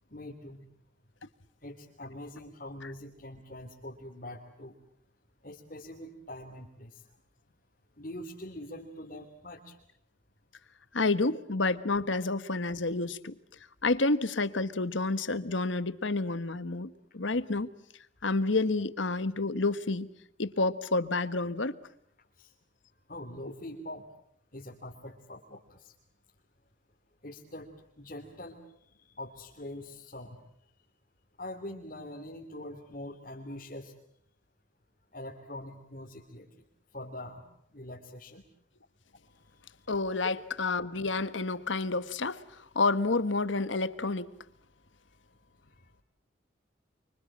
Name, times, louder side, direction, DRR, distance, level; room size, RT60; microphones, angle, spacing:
voice 1, 0.1-0.7 1.6-4.7 5.4-7.0 8.0-9.7 22.4-22.5 23.1-24.0 24.5-25.9 27.2-27.7 27.9-28.6 28.9-30.4 31.4-33.9 35.1-36.5 36.9-37.4 37.7-38.4, left 1 dB, 45° left, 3.1 m, -43 dB
voice 2, 10.9-13.4 13.8-17.7 18.2-20.1 20.4-21.8 39.9-44.3, left 3 dB, 75° left, 1.4 m, -29 dB
29.5 x 24.5 x 7.5 m
head